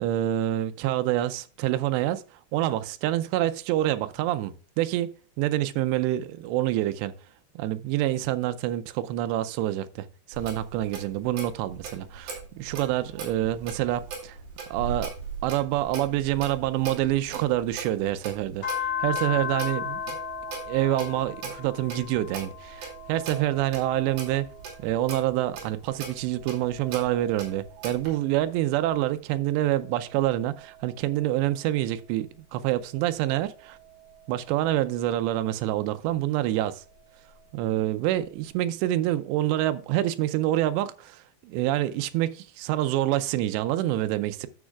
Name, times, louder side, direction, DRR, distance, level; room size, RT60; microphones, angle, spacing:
voice 1, 0.0-2.2 2.5-7.1 7.6-14.4 14.7-15.1 15.4-20.2 20.7-24.5 24.8-33.8 34.3-36.8 37.5-44.5, right 14 dB, 80° right, 2.7 m, -27 dB
Clock, 10.3-28.1, right 5 dB, 55° right, 4.1 m, -40 dB
sound 1, 18.6-25.3 25.8-28.7 29.3-32.1 32.8-35.3 36.6-37.7, left 6 dB, 25° left, 2.6 m, -39 dB
12.5 x 7.1 x 2.3 m
omnidirectional pair, 5.2 m